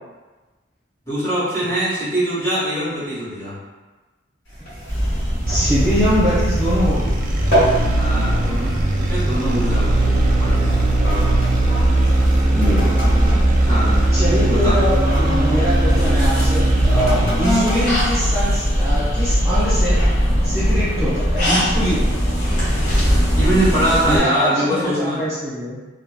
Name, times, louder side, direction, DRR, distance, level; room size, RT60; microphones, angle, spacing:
voice 1, 1.0-3.6 7.9-10.8 13.6-14.0 14.5-14.8 23.4-25.2, right 1 dB, 15° left, -13 dB, 1.2 m, -23 dB
sound 1, 4.5-7.1 7.3-7.9 8.3-8.6 9.3-9.5 10.2-16.0 16.8-19.2 19.8-19.9, right 1 dB, 65° left, 1.4 m, -27 dB
sound 2, 4.9-24.2, equal, 40° left, 0.9 m, -21 dB
sound 3, 5.4-17.5, right 2 dB, 40° right, 0.3 m, -20 dB
voice 2, 5.5-7.1 12.5-13.0 14.1-20.0 20.4-22.1 24.1-25.8, equal, 15° right, -13 dB, 0.7 m, -23 dB
2.9 x 2.2 x 2.2 m, 1.2 s
head